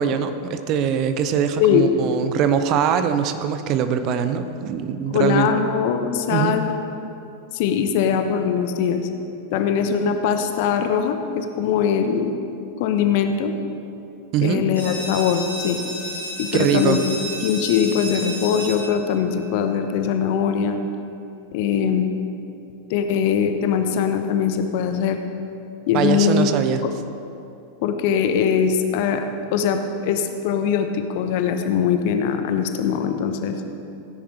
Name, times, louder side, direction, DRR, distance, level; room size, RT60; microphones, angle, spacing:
voice 1, 0.0-5.5 6.3-6.6 14.3-14.6 16.5-17.0 25.9-26.8, right 8 dB, 40° right, 9 dB, 0.6 m, -22 dB
voice 2, 5.1-6.7 7.5-9.1 9.5-12.3 12.8-13.5 14.4-15.8 16.4-20.8 21.5-22.1 22.9-25.2 25.9-26.5 27.8-29.2 29.5-33.6, left 7 dB, 50° left, 7 dB, 0.9 m, -21 dB
sound 1, 14.8-20.2, equal, 75° right, 3.0 m, -33 dB
16.5 x 10.0 x 3.3 m, 2.7 s
figure-of-eight pair, 90°, 0 cm